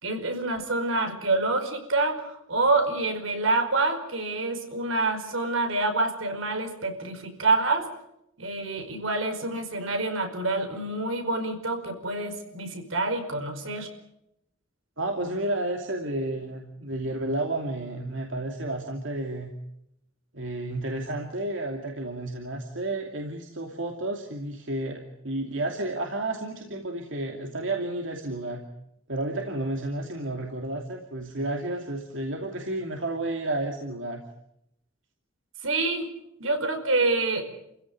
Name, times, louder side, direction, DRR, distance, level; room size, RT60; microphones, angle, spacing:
voice 1, 0.0-7.9 8.4-13.9 35.6-36.1 36.4-37.5, right 2 dB, 85° right, 6 dB, 5.1 m, -27 dB
voice 2, 15.0-19.5 20.3-28.6 29.1-34.2, right 2 dB, 70° right, 2 dB, 2.7 m, -31 dB
29.5 x 16.0 x 9.7 m, 0.82 s
head